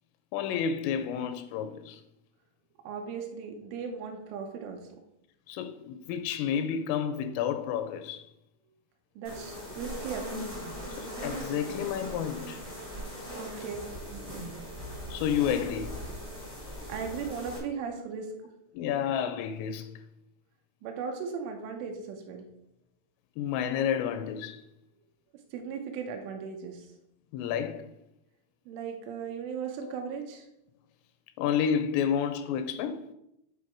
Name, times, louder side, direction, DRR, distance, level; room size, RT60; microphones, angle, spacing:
voice 1, 0.3-2.0 5.5-8.3 11.0-12.6 15.1-16.0 18.7-19.9 23.4-24.6 27.3-27.9 29.8-29.9 31.4-33.0, left 8 dB, 85° left, 3.0 m, -30 dB
voice 2, 2.8-4.8 9.2-10.3 13.4-14.5 16.9-18.3 20.8-22.5 25.5-26.9 28.7-30.5, right 6 dB, 80° right, 3.1 m, -37 dB
sound 1, 9.2-17.6, equal, 50° right, 0.6 m, -40 dB
11.0 x 4.0 x 4.4 m
omnidirectional pair, 5.9 m